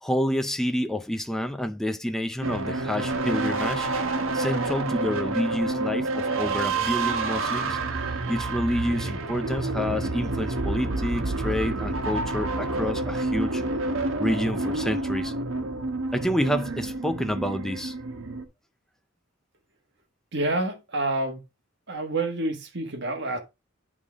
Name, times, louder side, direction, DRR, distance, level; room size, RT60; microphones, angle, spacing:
voice 1, 0.0-3.9 4.3-7.8 8.3-13.6 14.2-15.3 16.1-17.9, left 1 dB, ahead, 0.4 m, -28 dB
sound 1, 2.4-18.4, right 2 dB, 90° right, 1.3 m, -28 dB
voice 2, 20.3-21.4 21.9-23.4, right 2 dB, 60° right, 1.4 m, -28 dB
9.6 x 3.7 x 3.5 m
head